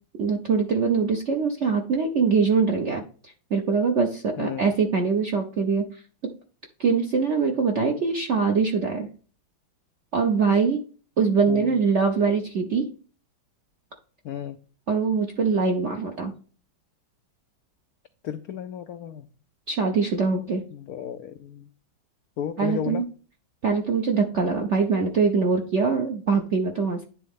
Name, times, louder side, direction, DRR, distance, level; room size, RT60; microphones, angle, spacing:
voice 1, 0.2-5.9 6.8-9.1 10.1-10.8 11.2-12.9 14.9-16.3 19.7-20.6 22.6-23.0 23.6-27.0, right 5 dB, 60° right, 0.7 m, -23 dB
voice 2, 4.4-4.7 11.5-11.8 14.2-14.6 18.2-19.3 20.7-21.7 22.4-23.0, left 9 dB, 80° left, 0.8 m, -33 dB
10.0 x 3.7 x 3.6 m
omnidirectional pair, 2.2 m